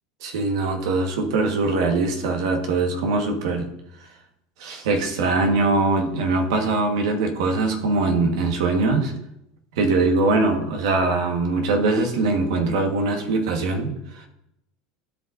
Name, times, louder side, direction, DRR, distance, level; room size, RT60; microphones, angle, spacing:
voice 1, 0.2-3.7 4.6-9.1 9.8-14.3, right 3 dB, 80° right, 3 dB, 1.4 m, -22 dB
14.0 x 5.2 x 2.6 m, 0.83 s
supercardioid pair, 125°, 3 cm